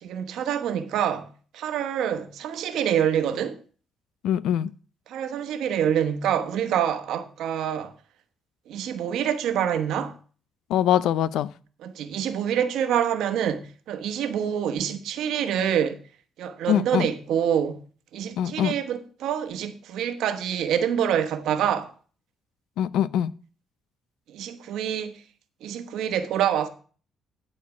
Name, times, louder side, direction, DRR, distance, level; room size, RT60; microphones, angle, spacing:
voice 1, 0.0-3.6 5.1-7.9 8.7-10.1 11.8-16.0 16.4-17.8 18.1-21.9 24.3-25.1 25.6-26.7, right 9 dB, 85° right, 1.1 m, -26 dB
voice 2, 4.2-4.7 10.7-11.5 16.7-17.1 18.4-18.7 22.8-23.3, left 10 dB, 85° left, 0.4 m, -23 dB
11.0 x 4.4 x 7.0 m
cardioid pair, 90°, 0 cm